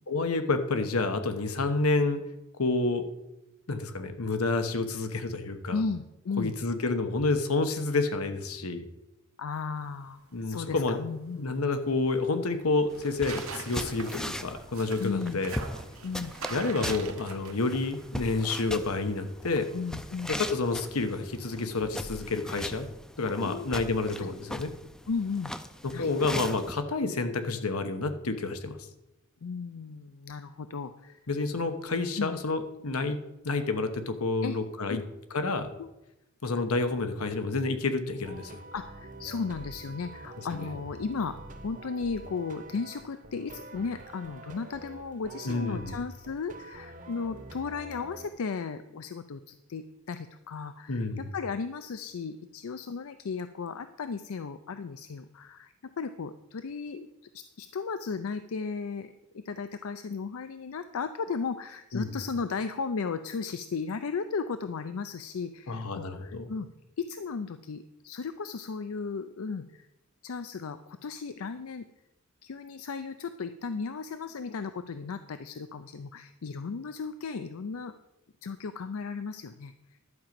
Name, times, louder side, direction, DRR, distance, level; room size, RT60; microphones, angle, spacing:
voice 1, 0.1-2.2 2.5-3.0 3.7-5.8 6.4-8.8 10.3-11.0 11.3-15.5 16.5-19.7 20.3-22.9 23.2-24.7 26.0-28.8 31.3-35.0 35.3-35.7 36.4-38.5 40.5-40.7 45.4-45.9 50.9-51.2 61.9-62.1 65.7-66.5, left 3 dB, 90° left, 8 dB, 1.1 m, -29 dB
voice 2, 5.7-6.6 9.4-11.4 15.0-15.4 16.0-16.3 19.7-20.3 23.4-23.7 24.2-24.3 25.1-25.5 25.9-26.1 29.4-31.2 32.2-32.3 34.4-34.6 34.9-35.0 35.8-35.9 38.7-41.4 41.6-57.1 57.3-66.7 67.0-69.9 70.2-71.9 72.4-78.0 78.4-80.0, left 5 dB, 75° left, 11 dB, 0.5 m, -35 dB
sound 1, 9.8-22.0, right 5 dB, 75° right, 1.2 m, -46 dB
sound 2, 12.9-26.8, left 1 dB, 5° left, 0.4 m, -40 dB
sound 3, 38.1-48.3, right 2 dB, 35° right, 0.9 m, -46 dB
11.5 x 5.2 x 7.5 m, 0.95 s
head